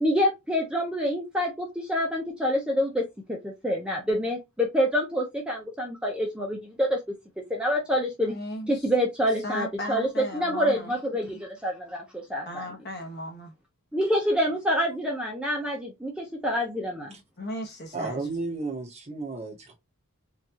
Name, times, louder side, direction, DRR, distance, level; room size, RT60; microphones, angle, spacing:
voice 1, 0.0-7.0 7.5-8.3 8.7-12.7 13.9-17.1, equal, 5° right, 0.7 m, -27 dB
voice 2, 8.2-8.9 9.4-10.9 12.5-13.5 17.4-18.2, left 1 dB, 45° left, 1.2 m, -36 dB
voice 3, 17.9-19.7, right 3 dB, 30° right, 1.0 m, -33 dB
4.5 x 2.6 x 2.9 m
head